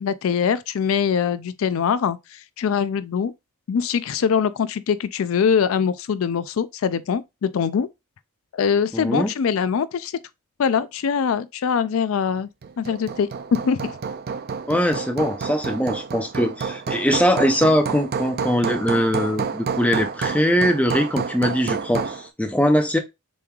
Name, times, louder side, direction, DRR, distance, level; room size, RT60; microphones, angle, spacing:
voice 1, 0.0-3.3 3.7-7.9 8.5-10.1 10.6-12.5 12.8-13.9, left 7 dB, 70° left, 0.4 m, -23 dB
voice 2, 8.9-9.3 14.7-23.0, equal, 5° left, 0.5 m, -21 dB
Hammer, 12.6-22.3, right 5 dB, 45° right, 0.4 m, -29 dB
6.9 x 3.1 x 2.3 m
head